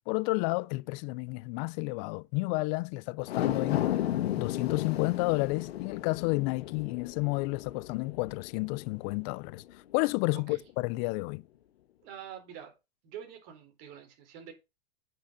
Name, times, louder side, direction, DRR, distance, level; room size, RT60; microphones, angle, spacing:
voice 1, 0.1-3.9 4.4-9.6 9.9-11.4, left 25 dB, 45° left, 0.5 m, -31 dB
sound 1, 3.2-9.7 10.1-10.2, left 12 dB, 85° left, 1.5 m, -34 dB
voice 2, 12.0-12.7 13.0-14.5, right 9 dB, 50° right, 4.1 m, -46 dB
8.6 x 6.3 x 5.6 m
supercardioid pair, 125°, 30 cm